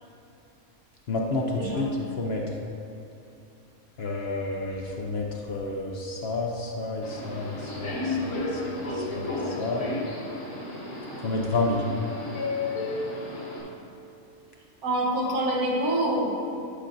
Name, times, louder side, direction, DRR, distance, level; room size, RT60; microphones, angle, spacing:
voice 1, 1.1-2.4 4.0-9.9 11.2-11.9, left 2 dB, 55° left, 0 dB, 0.8 m, -30 dB
Subway metro underground, 7.0-13.6, left 2 dB, 80° left, 2.1 m, -33 dB
voice 2, 14.8-16.4, right 1 dB, 75° right, -3 dB, 1.6 m, -26 dB
11.5 x 5.6 x 2.6 m, 2.7 s
omnidirectional pair, 1.5 m